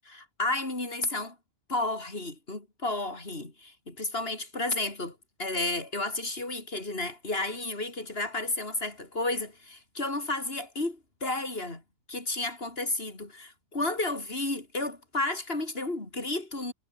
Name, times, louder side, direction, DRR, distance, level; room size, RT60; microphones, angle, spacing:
voice 1, 0.1-1.4 1.7-11.8 12.1-16.7, left 2 dB, 55° left, 4.7 m, -32 dB
omnidirectional pair, 1.2 m